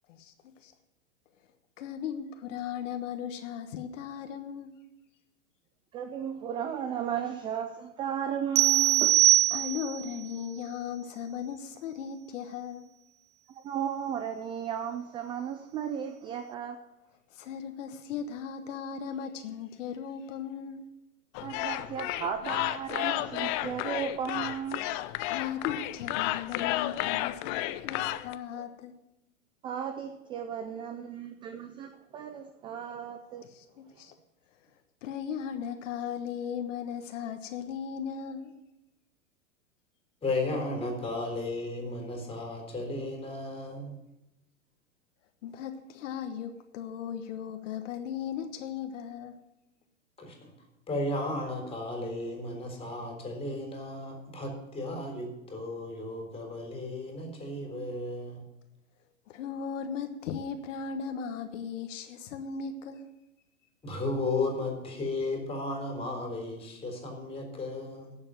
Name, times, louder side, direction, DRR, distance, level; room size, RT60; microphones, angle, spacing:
voice 1, 1.8-4.7 9.5-12.9 17.3-20.8 25.3-28.9 33.5-34.1 35.0-38.5 45.4-49.4 59.3-63.1, left 7 dB, 65° left, 1.3 m, -37 dB
voice 2, 5.9-9.2 13.6-16.8 21.4-24.9 28.5-28.7 29.6-33.4, right 8 dB, 15° right, 0.3 m, -35 dB
sound 1, 8.6-10.1, right 14 dB, 70° right, 0.5 m, -22 dB
sound 2, 21.3-28.3, left 15 dB, 35° left, 0.6 m, -32 dB
voice 3, 40.2-44.0 50.2-50.5 50.9-58.4 63.8-68.2, left 2 dB, 15° left, 3.8 m, -34 dB
11.5 x 7.1 x 9.1 m
hypercardioid pair, 125°, 40 cm